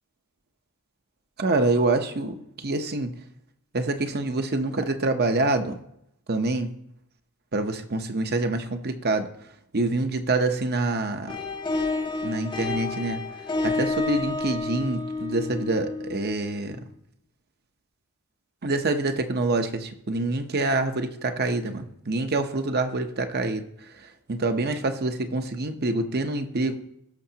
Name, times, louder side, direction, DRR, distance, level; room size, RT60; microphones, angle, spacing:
voice 1, 1.4-3.2 3.7-5.8 6.3-6.7 7.5-9.3 9.7-11.3 12.2-13.2 13.6-16.8 18.6-26.8, right 2 dB, 45° right, 7 dB, 0.9 m, -26 dB
sound 1, 11.3-16.8, left 3 dB, 20° left, 0.6 m, -30 dB
18.0 x 6.4 x 2.9 m, 0.77 s
head